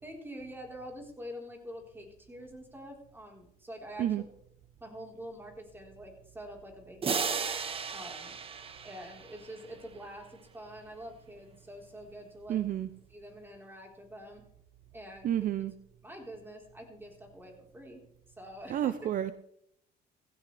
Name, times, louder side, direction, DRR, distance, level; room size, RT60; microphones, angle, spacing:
voice 1, 0.0-4.2 4.8-7.3 7.9-8.4 8.8-12.6 13.1-14.4 14.9-15.3 16.0-18.0 18.4-19.0, equal, 10° right, 1 dB, 4.2 m, -46 dB
sound 1, 7.0-9.7, right 5 dB, 35° right, 1.3 m, -35 dB
voice 2, 12.5-12.9 15.2-15.7 18.7-19.3, right 11 dB, 55° right, 13 dB, 0.7 m, -30 dB
16.0 x 16.0 x 3.4 m, 0.71 s
cardioid pair, 110°, 17 cm